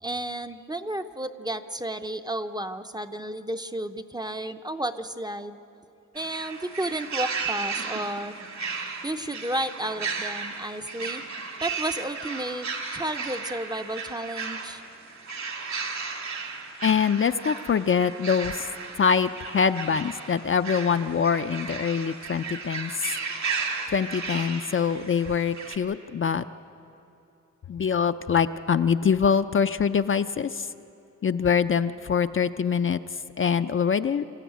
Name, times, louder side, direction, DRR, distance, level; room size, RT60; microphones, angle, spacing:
voice 1, 0.0-5.6 6.1-8.4 9.0-11.2 11.6-14.8, right 1 dB, 15° right, 8 dB, 0.6 m, -32 dB
sound 1, 6.2-25.8, right 4 dB, 65° right, 2.2 m, -35 dB
voice 2, 16.8-18.7 19.0-23.1 23.9-26.4 27.7-30.7 31.2-33.0 33.4-34.2, left 6 dB, 45° left, 9 dB, 0.4 m, -24 dB
26.0 x 14.0 x 9.3 m, 2.7 s
wide cardioid pair, 165°, 31 cm